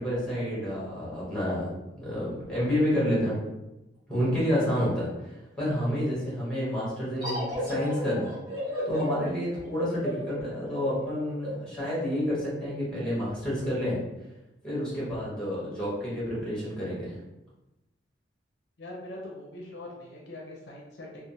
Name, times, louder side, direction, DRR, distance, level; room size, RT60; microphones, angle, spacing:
voice 1, 0.0-1.7 2.0-3.4 4.1-8.3 8.9-14.0 14.6-17.2, equal, 5° left, -7 dB, 1.1 m, -29 dB
sound 1, 7.2-12.5, equal, 25° right, 0.9 m, -34 dB
voice 2, 18.8-21.2, left 1 dB, 65° left, -1 dB, 0.5 m, -42 dB
3.1 x 2.0 x 2.6 m, 0.96 s
head